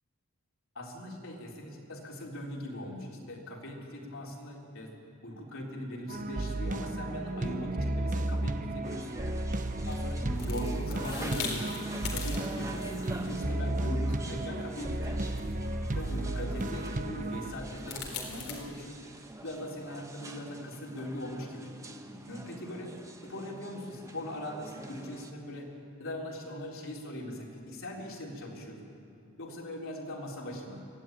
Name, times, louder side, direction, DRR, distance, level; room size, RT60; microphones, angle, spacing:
voice 1, 0.8-4.9 5.2-9.1 9.9-11.8 12.1-15.2 16.0-19.0 19.4-21.7 22.3-22.9 23.2-25.7 26.0-28.8 29.4-30.8, left 1 dB, 65° left, -1 dB, 3.9 m, -40 dB
sound 1, 6.1-17.5, right 1 dB, 40° right, 0.9 m, -33 dB
sound 2, 8.8-25.3, right 1 dB, 15° right, 1.3 m, -46 dB
sound 3, 9.6-18.6, left 5 dB, 85° left, 4.2 m, -44 dB
23.5 x 16.0 x 9.3 m, 2.6 s
head